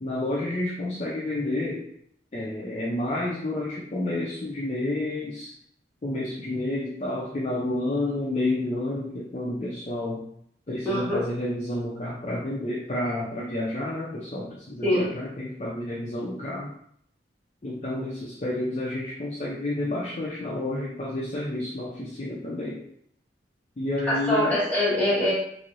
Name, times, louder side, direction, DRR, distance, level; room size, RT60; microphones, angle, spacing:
voice 1, 0.0-1.9 2.3-5.5 6.0-10.3 10.7-16.7 17.6-22.8 23.8-24.6, left 1 dB, 35° left, -5 dB, 0.4 m, -30 dB
voice 2, 10.8-11.2 14.8-15.1 24.1-25.3, left 1 dB, 10° left, -10 dB, 1.4 m, -23 dB
3.1 x 2.6 x 2.5 m, 0.69 s
head